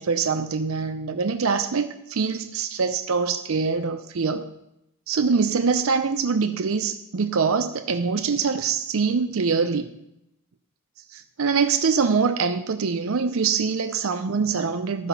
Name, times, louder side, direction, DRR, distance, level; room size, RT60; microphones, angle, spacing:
voice 1, 0.0-4.5 5.1-9.9 11.1-15.1, right 5 dB, 75° right, 8 dB, 0.5 m, -24 dB
12.0 x 5.0 x 5.8 m, 0.83 s
head